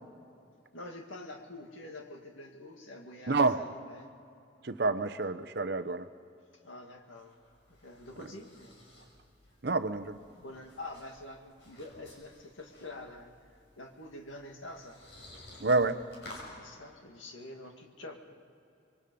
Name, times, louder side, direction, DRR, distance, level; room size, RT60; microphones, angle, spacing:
voice 1, 0.7-4.1 6.6-7.4 7.7-8.7 10.3-13.3 13.8-15.0 15.5-15.7 16.5-18.2, left 2 dB, 85° left, 3 dB, 2.1 m, -46 dB
voice 2, 3.3-3.6 4.6-6.1 9.6-10.2 15.6-16.0, right 3 dB, 55° right, 12 dB, 0.8 m, -28 dB
sound 1, 6.9-16.5, left 1 dB, 60° left, 6.5 m, -54 dB
26.0 x 22.5 x 5.4 m, 2.5 s
head